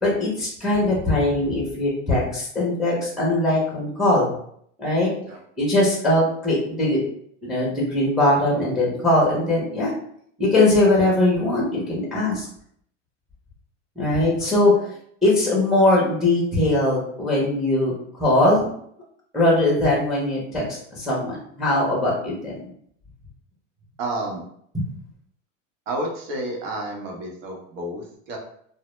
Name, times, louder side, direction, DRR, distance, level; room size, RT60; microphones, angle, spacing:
voice 1, 0.0-4.3 4.8-5.1 5.6-7.0 7.4-9.9 10.4-12.5 14.0-14.7 15.2-18.7 19.3-20.6 20.9-22.7 24.7-24.8, left 1 dB, ahead, -3 dB, 0.5 m, -21 dB
voice 2, 14.4-14.9 24.0-24.4 25.9-28.4, right 1 dB, 80° right, 1 dB, 0.9 m, -31 dB
2.0 x 2.0 x 3.0 m, 0.66 s
supercardioid pair, 135°, 37 cm